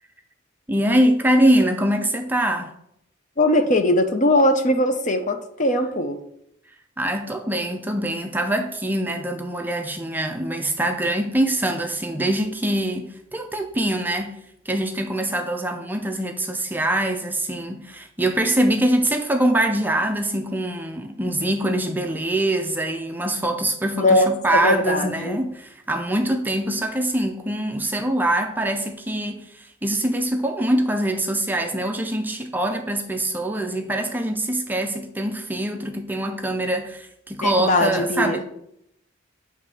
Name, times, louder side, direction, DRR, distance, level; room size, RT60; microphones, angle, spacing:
voice 1, 0.7-2.7 7.0-38.4, right 1 dB, 10° right, 0.4 m, -23 dB
voice 2, 3.4-6.2 24.0-25.4 37.4-38.4, left 1 dB, 40° left, 0.6 m, -20 dB
7.8 x 3.2 x 5.2 m
head